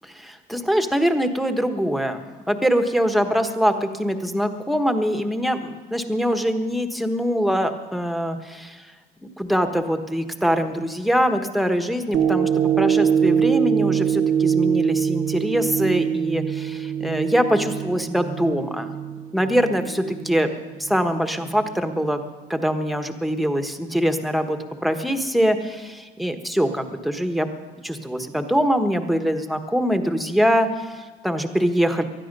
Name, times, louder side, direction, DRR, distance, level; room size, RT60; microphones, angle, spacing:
voice 1, 0.0-8.9 9.2-18.9 19.3-20.5 20.8-22.2 22.5-27.5 27.8-32.0, equal, ahead, 7 dB, 1.3 m, -23 dB
sound 1, 12.1-20.5 21.0-21.1, right 7 dB, 55° right, 1.2 m, -23 dB
20.0 x 13.0 x 5.4 m, 1.4 s
cardioid pair, 110°, 17 cm